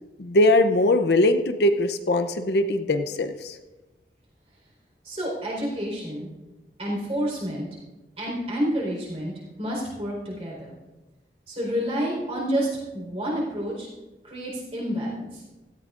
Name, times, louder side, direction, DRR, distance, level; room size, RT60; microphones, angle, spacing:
voice 1, 0.2-3.6, left 1 dB, 70° left, 7 dB, 0.7 m, -21 dB
voice 2, 5.0-6.3 6.8-7.7 8.2-9.3 9.6-10.7 11.5-13.9 14.2-15.4, equal, 35° right, -3 dB, 4.3 m, -29 dB
16.5 x 14.0 x 2.5 m, 1.1 s
head